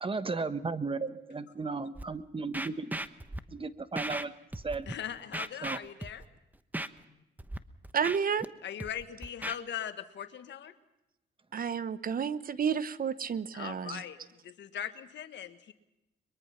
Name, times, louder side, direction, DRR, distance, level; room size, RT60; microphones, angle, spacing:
voice 1, 0.0-3.0 3.5-4.3 4.6-4.9 5.6-5.8, right 4 dB, 30° right, 12 dB, 1.2 m, -35 dB
Scratching (performance technique), 2.0-2.1 2.5-3.4 4.0-4.2 4.5-4.9 5.3-6.2 6.7-6.9 7.4-7.6 7.8-8.5 8.8-9.6, right 1 dB, 10° right, 1.0 m, -37 dB
voice 2, 4.9-6.2 7.1-7.2 8.6-10.7 13.5-14.2 14.4-15.7, left 9 dB, 80° left, 10 dB, 1.5 m, -40 dB
voice 3, 7.9-8.5 11.5-14.0, right 7 dB, 50° right, 15 dB, 1.0 m, -31 dB
23.0 x 22.5 x 5.8 m, 0.91 s
cardioid pair, 85°, 18 cm